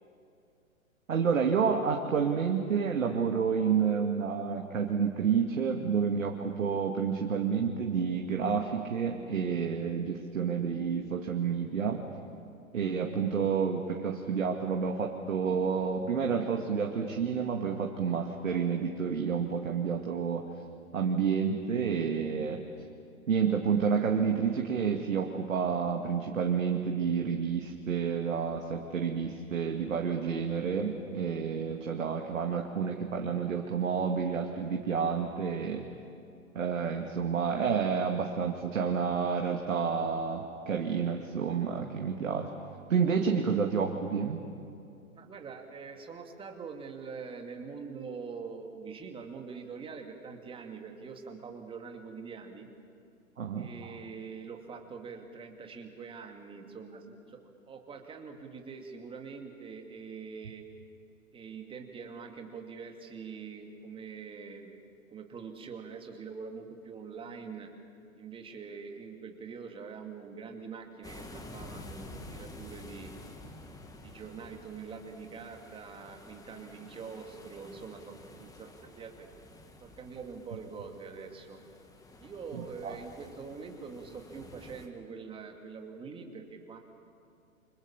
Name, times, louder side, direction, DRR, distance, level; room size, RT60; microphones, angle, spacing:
voice 1, 1.1-12.0 12.7-20.4 20.9-22.6 23.3-35.8 36.5-42.5 42.9-44.4 53.4-53.7 82.5-83.0, right 6 dB, 65° right, 2 dB, 2.4 m, -29 dB
voice 2, 45.1-52.7 53.6-57.4 57.7-60.7 61.3-64.7 65.1-67.7 68.2-73.1 74.0-79.3 79.8-81.6 82.2-86.8, right 5 dB, 15° right, 3 dB, 2.5 m, -44 dB
sound 1, 71.0-84.9, left 2 dB, 10° left, 1.8 m, -50 dB
29.0 x 26.0 x 7.3 m, 2.6 s
figure-of-eight pair, 120°, 42 cm